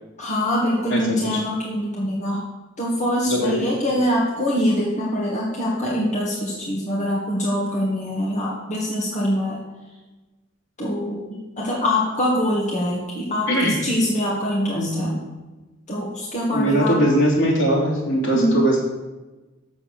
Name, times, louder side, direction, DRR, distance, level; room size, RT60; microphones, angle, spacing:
voice 1, 0.2-2.4 2.8-9.6 10.8-13.5 13.8-15.2 15.9-17.0 18.3-18.6, left 1 dB, 35° left, -4 dB, 1.7 m, -23 dB
voice 2, 3.3-3.6 13.5-13.8 14.7-15.2 16.5-18.8, right 1 dB, 65° left, -5 dB, 3.3 m, -20 dB
7.5 x 7.1 x 6.6 m, 1.1 s
head